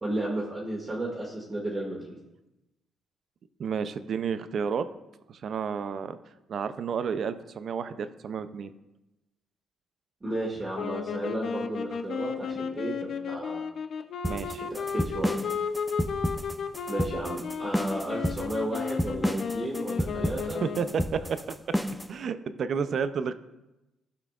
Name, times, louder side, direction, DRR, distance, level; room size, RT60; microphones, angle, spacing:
voice 1, 0.0-2.1 10.2-13.6 14.7-15.4 16.9-20.6, right 1 dB, 25° right, -4 dB, 1.7 m, -33 dB
voice 2, 3.6-4.9 5.3-6.2 6.5-8.7 14.3-14.6 20.6-21.6 22.1-23.3, right 6 dB, 60° right, 12 dB, 0.5 m, -31 dB
sound 1, 10.7-21.1, left 6 dB, 60° left, 0.5 m, -34 dB
sound 2, 14.2-22.1, equal, ahead, 0.4 m, -30 dB
15.5 x 5.7 x 2.4 m, 0.96 s
cardioid pair, 90°, 0 cm